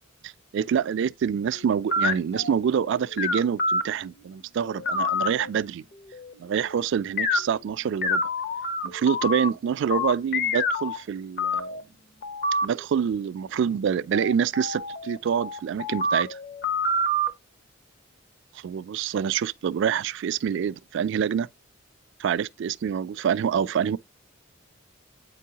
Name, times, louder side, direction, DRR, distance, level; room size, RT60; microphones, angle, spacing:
voice 1, 0.2-5.8 6.4-8.2 8.8-11.8 12.6-16.4 18.5-21.5 22.2-24.0, right 7 dB, 60° right, 0.3 m, -26 dB
sound 1, 1.5-3.8 4.6-5.5 6.1-6.8 7.2-7.4 8.0-9.5 9.9-11.0 11.4-11.8 12.2-12.7 14.1-17.3, left 1 dB, 50° left, 0.8 m, -27 dB
8.2 x 4.6 x 2.8 m
head